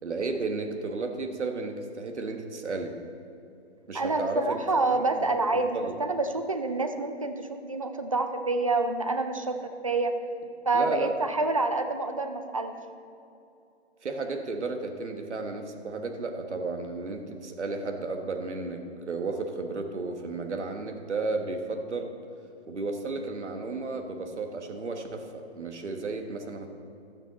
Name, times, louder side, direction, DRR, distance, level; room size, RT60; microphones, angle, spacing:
voice 1, 0.0-3.0 3.9-5.3 5.5-5.9 10.7-11.1 14.0-18.8 19.1-22.1 22.7-26.7, right 3 dB, 90° right, 5 dB, 1.4 m, -33 dB
voice 2, 3.9-10.2 10.6-12.7, right 3 dB, 30° right, 8 dB, 0.4 m, -27 dB
12.0 x 9.0 x 4.1 m, 2.7 s
hypercardioid pair, 165°, 34 cm